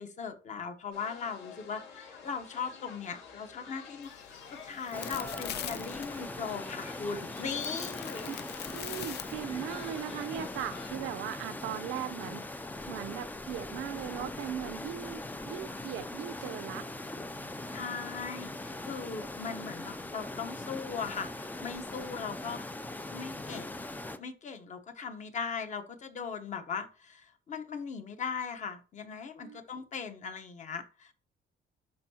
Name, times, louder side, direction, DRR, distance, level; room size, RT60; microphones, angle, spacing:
voice 1, 0.0-8.3 17.7-22.6 23.1-23.8 24.2-31.1, left 5 dB, 40° left, 1.0 m, -39 dB
sound 1, 0.9-10.9, left 5 dB, 80° left, 3.8 m, -49 dB
sound 2, 4.0-9.9, left 11 dB, 60° left, 0.5 m, -44 dB
sound 3, 4.9-24.2, left 2 dB, 10° left, 0.4 m, -41 dB
voice 2, 8.7-16.8 22.4-22.5 29.4-29.6, right 10 dB, 85° right, 0.7 m, -39 dB
12.0 x 4.6 x 2.8 m
cardioid pair, 165°, 20 cm